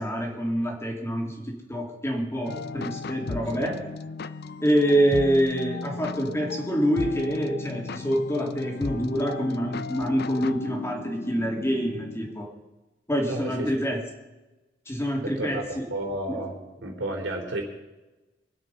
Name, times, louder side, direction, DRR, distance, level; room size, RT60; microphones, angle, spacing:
voice 1, 0.0-3.7 4.6-12.5 13.1-14.0 14.9-15.8 16.3-16.4, equal, 15° left, 0 dB, 2.7 m, -26 dB
sound 1, 2.5-12.3, left 3 dB, 60° left, 0.6 m, -36 dB
voice 2, 13.3-14.0 15.2-16.6 16.8-17.6, right 1 dB, 90° right, 1 dB, 3.5 m, -32 dB
24.0 x 8.0 x 5.5 m, 1.1 s
head